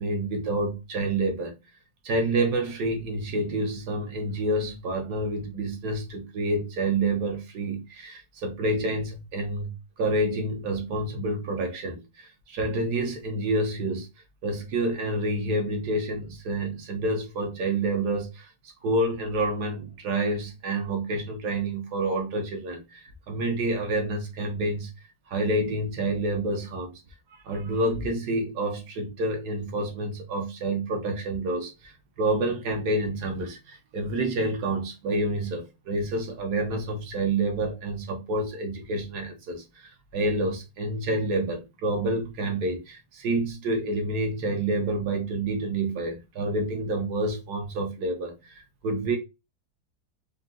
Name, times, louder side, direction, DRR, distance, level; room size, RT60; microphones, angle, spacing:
voice 1, 0.0-1.6 2.0-14.1 14.4-18.5 18.8-24.9 25.3-26.9 27.3-49.2, right 2 dB, 75° right, 1.7 m, -28 dB
4.5 x 2.7 x 3.7 m
omnidirectional pair, 1.7 m